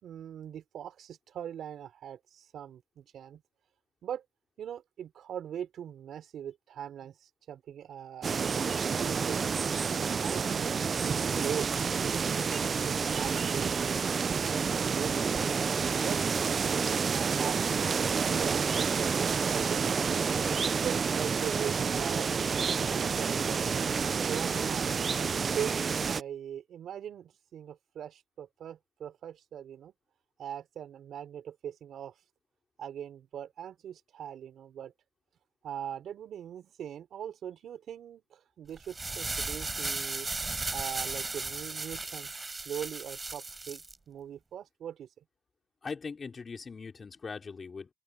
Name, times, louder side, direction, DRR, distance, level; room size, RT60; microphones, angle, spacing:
voice 1, 0.0-3.4 4.0-4.2 4.6-9.5 10.2-14.0 14.5-15.7 16.0-16.2 16.6-20.2 20.8-23.6 24.2-24.9 25.3-29.9 30.4-32.1 32.8-34.9 35.6-40.3 40.7-45.1, right 9 dB, 75° right, 3.7 m, -41 dB
sound 1, 8.2-26.2, right 5 dB, 45° right, 0.5 m, -29 dB
sound 2, 38.8-43.9, right 3 dB, 30° right, 6.2 m, -36 dB
voice 2, 45.8-47.9, left 5 dB, 40° left, 4.7 m, -40 dB
open air
cardioid pair, 75°, 0 cm